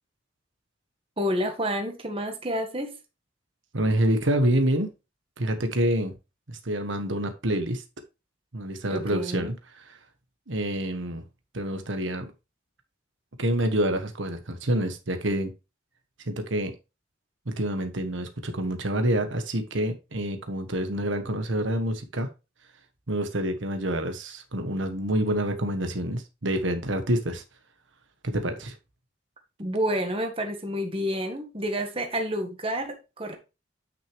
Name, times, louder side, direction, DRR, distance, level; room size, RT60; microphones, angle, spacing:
voice 1, 1.2-3.0 8.9-9.5 29.6-33.4, equal, 30° right, 1.6 m, -29 dB
voice 2, 3.7-4.9 5.4-6.1 6.5-7.8 8.5-9.8 10.5-11.2 11.5-12.3 13.4-15.5 16.3-16.7 17.5-22.3 23.1-27.4 28.2-28.7, right 1 dB, 80° right, 1.3 m, -27 dB
9.3 x 6.2 x 3.4 m
head